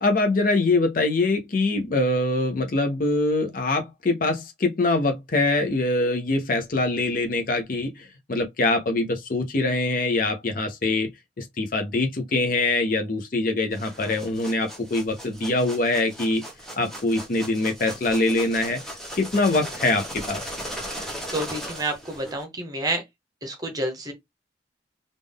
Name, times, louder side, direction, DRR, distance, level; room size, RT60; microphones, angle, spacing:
voice 1, 0.0-11.1 11.4-16.4 16.8-18.8 19.1-20.5, left 2 dB, 50° left, 0.7 m, -24 dB
sound 1, 13.7-22.4, equal, 5° left, 1.3 m, -37 dB
voice 2, 21.3-23.0 23.4-24.1, right 1 dB, 20° right, 1.0 m, -29 dB
3.6 x 2.5 x 3.5 m
head